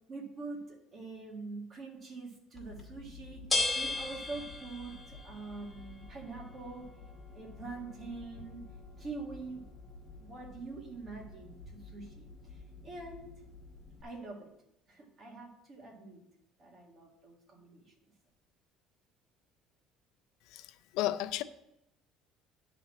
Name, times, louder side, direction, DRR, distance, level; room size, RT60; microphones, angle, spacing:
voice 1, 0.1-3.4 3.7-6.9 7.3-8.6 9.0-9.7 10.2-13.3 14.0-14.5 14.9-16.2 16.6-17.9, right 3 dB, 30° right, 1.9 m, -45 dB
sound 1, 2.5-14.0, left 3 dB, 5° left, 2.3 m, -41 dB
voice 2, 20.9-21.4, left 14 dB, 70° left, 0.5 m, -32 dB
10.5 x 4.2 x 7.2 m
cardioid pair, 160°, 0 cm